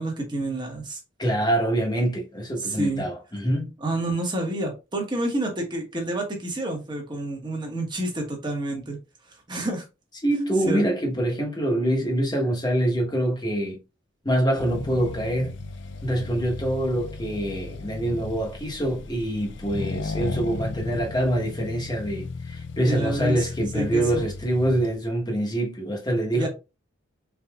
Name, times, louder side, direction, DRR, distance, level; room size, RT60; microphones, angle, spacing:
voice 1, 0.0-1.0 2.6-3.1 3.8-9.0 9.5-9.8 10.6-10.8 22.8-23.5 23.7-24.2 26.3-26.5, right 1 dB, 20° right, 1.1 m, -28 dB
voice 2, 1.2-3.7 10.2-13.8 14.2-15.5 16.0-26.5, right 1 dB, 20° left, 1.1 m, -25 dB
Accelerating revving vroom, 14.6-25.0, left 3 dB, 60° left, 0.4 m, -35 dB
4.0 x 3.6 x 2.3 m
head